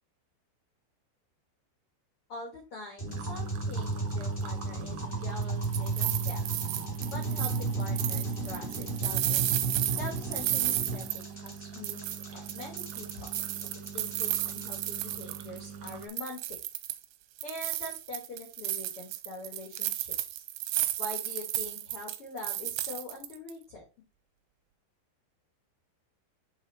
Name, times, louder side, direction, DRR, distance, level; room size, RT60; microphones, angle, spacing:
voice 1, 2.3-6.5 7.1-9.5 10.0-13.3 13.6-16.6 17.4-20.4 21.0-23.8, left 2 dB, 85° left, 1 dB, 1.2 m, -44 dB
sound 1, 3.0-14.9, right 3 dB, 30° left, 0.9 m, -34 dB
sound 2, 3.1-16.1, right 5 dB, 65° right, 2.0 m, -45 dB
sound 3, 5.4-11.6 11.8-15.6 15.9-17.1 17.4-23.5, right 15 dB, 85° right, 2.6 m, -33 dB
8.9 x 3.8 x 4.3 m, 0.29 s
omnidirectional pair, 5.4 m